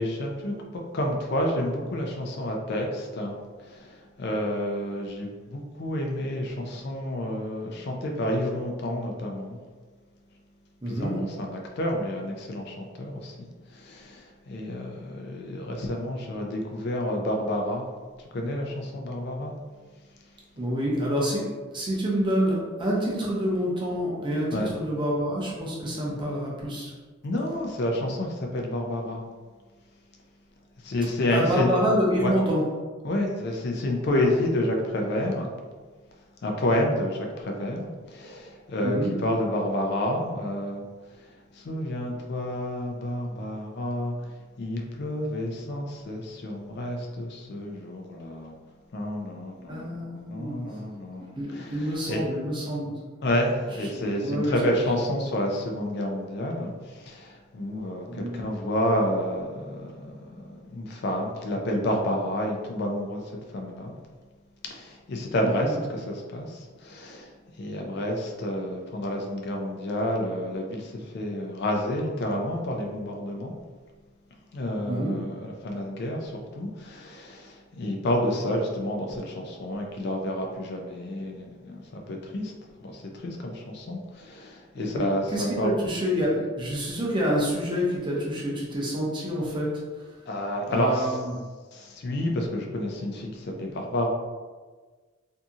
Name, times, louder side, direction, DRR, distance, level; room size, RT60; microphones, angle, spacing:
voice 1, 0.0-3.3 3.6-9.6 10.9-13.4 13.7-17.9 18.3-19.5 24.5-24.7 27.2-29.2 30.8-31.7 32.2-32.3 33.0-35.5 36.4-40.9 41.5-44.2 44.6-48.5 48.9-52.2 53.2-63.2 63.5-63.9 64.7-67.3 67.6-73.6 74.5-82.5 82.8-85.7 90.3-91.2 91.7-94.1, left 1 dB, 55° left, 1 dB, 0.4 m, -29 dB
voice 2, 10.8-11.2 20.5-21.5 21.7-26.9 31.3-32.6 34.1-34.2 38.8-39.1 49.7-50.8 51.4-52.9 54.2-54.7 58.1-58.5 65.4-65.7 74.9-75.2 84.8-85.0 85.3-89.7 90.0-90.1 90.7-91.3, equal, 25° right, -4 dB, 0.6 m, -27 dB
2.7 x 2.6 x 2.3 m, 1.4 s
head